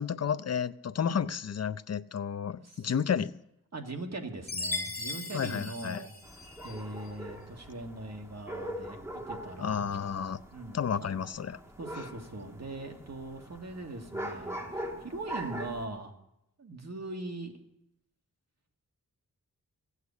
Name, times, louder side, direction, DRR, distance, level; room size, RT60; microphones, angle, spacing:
voice 1, 0.0-3.3 5.3-6.1 9.6-10.4 10.7-11.6, left 7 dB, 50° left, 14 dB, 0.5 m, -31 dB
voice 2, 3.7-6.1 6.6-9.9 10.5-11.1 11.8-16.1 16.6-17.5, right 2 dB, 50° right, 3 dB, 1.9 m, -41 dB
Chime, 4.5-6.8, left 3 dB, 30° left, 2.3 m, -37 dB
sound 1, 6.2-15.9, right 1 dB, 10° right, 1.9 m, -42 dB
15.5 x 8.1 x 8.3 m, 0.82 s
wide cardioid pair, 95°, 34 cm